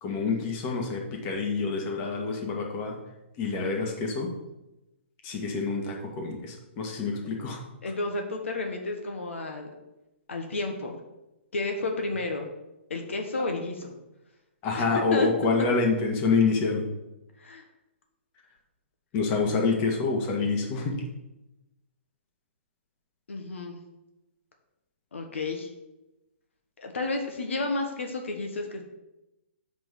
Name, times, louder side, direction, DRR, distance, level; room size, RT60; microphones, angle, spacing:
voice 1, 0.0-3.0 3.4-4.3 5.2-7.6 14.6-16.9 19.1-21.0, left 4 dB, 30° left, 1 dB, 1.7 m, -27 dB
voice 2, 7.8-9.7 10.3-11.0 11.5-12.5 12.9-13.9 14.8-15.3 17.4-17.6 23.3-23.8 25.1-25.7 26.8-28.8, left 3 dB, 80° left, 3 dB, 1.4 m, -31 dB
6.0 x 5.3 x 6.2 m, 0.96 s
hypercardioid pair, 140°, 7 cm